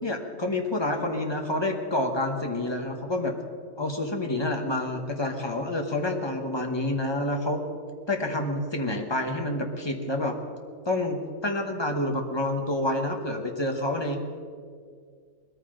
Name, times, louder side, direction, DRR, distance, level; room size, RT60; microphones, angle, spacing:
voice 1, 0.0-3.3 3.8-7.6 8.1-10.3 10.8-14.2, left 1 dB, 20° left, 3 dB, 1.1 m, -28 dB
20.0 x 13.5 x 3.9 m, 2.1 s
omnidirectional pair, 1.7 m